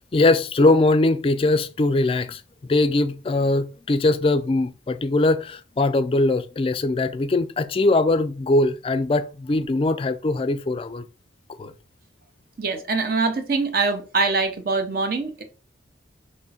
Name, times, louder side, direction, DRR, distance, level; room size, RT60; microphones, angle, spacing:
voice 1, 0.1-11.1 11.6-11.7, left 2 dB, 30° left, 0.3 m, -21 dB
voice 2, 12.6-15.4, right 4 dB, 50° right, 0.7 m, -23 dB
3.6 x 3.0 x 4.1 m
head